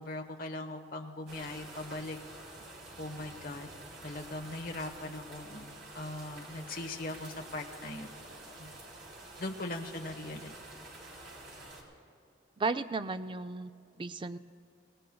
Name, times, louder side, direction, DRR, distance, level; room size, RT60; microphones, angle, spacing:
voice 1, 0.0-2.2 3.0-3.7 4.0-8.1 8.6-8.7 9.4-10.5, left 2 dB, 45° left, 3 dB, 1.1 m, -40 dB
sound 1, 1.3-11.8, right 2 dB, 60° right, 3.3 m, -49 dB
voice 2, 12.6-13.7 14.0-14.4, right 3 dB, 25° right, 11 dB, 0.3 m, -34 dB
26.0 x 18.0 x 2.3 m, 2.6 s
head